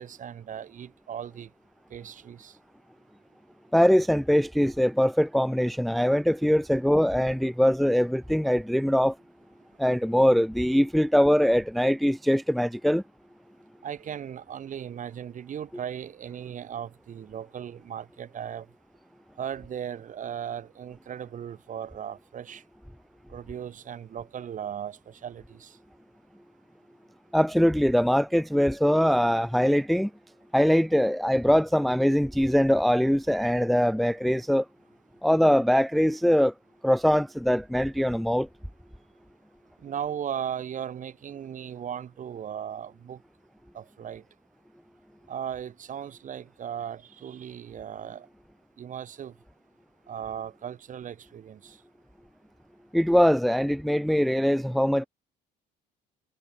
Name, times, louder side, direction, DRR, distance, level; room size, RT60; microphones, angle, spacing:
voice 1, 0.0-1.5 1.9-2.5 13.8-18.7 19.4-22.6 23.3-25.8 39.8-43.2 43.7-44.2 45.3-48.3 48.8-49.3 50.1-51.8, right 9 dB, 50° right, 5.4 m, -37 dB
voice 2, 3.7-9.2 9.8-13.0 27.3-30.1 30.5-34.6 35.2-36.5 36.8-38.5 52.9-55.1, equal, ahead, 0.5 m, -22 dB
cardioid pair, 110°, 17 cm